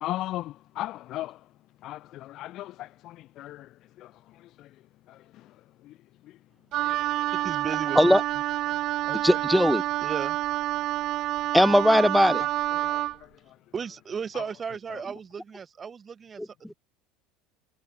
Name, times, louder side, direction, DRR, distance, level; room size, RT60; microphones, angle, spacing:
voice 1, 0.0-1.3 1.8-2.0 2.4-2.7 3.4-3.6, left 15 dB, 55° left, 0.3 m, -33 dB
Wind instrument woodwind instrument, 6.7-13.2, right 15 dB, 55° right, 5.0 m, -28 dB
voice 2, 7.3-8.2 9.0-9.2 10.0-10.4 13.7-16.7, right 6 dB, 25° right, 3.9 m, -35 dB
voice 3, 9.2-9.8 11.5-12.4, equal, ahead, 1.5 m, -19 dB
supercardioid pair, 115°, 0 cm